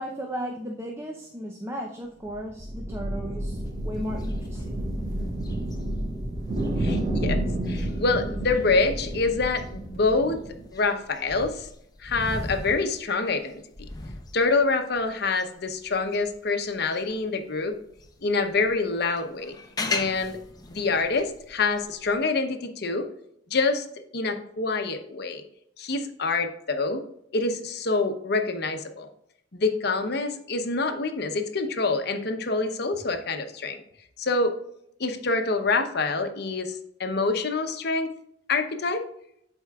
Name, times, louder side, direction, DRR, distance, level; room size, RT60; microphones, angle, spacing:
voice 1, 0.0-4.9, equal, 15° right, 1 dB, 0.6 m, -35 dB
sound 1, 2.2-10.7, right 1 dB, 40° right, 2.4 m, -30 dB
sound 2, 3.6-17.3 17.7-22.2, left 3 dB, 20° left, 0.7 m, -39 dB
voice 2, 6.8-7.4 7.7-10.4 10.7-11.7 12.0-13.6 14.3-17.8 18.2-19.5 19.9-20.4 20.7-23.1 23.5-23.8 24.1-25.4 25.8-27.1 27.3-29.1 29.5-33.8 34.2-34.5 35.0-38.1 38.5-39.0, left 3 dB, 60° left, 6 dB, 0.8 m, -26 dB
12.0 x 4.5 x 2.4 m, 0.75 s
head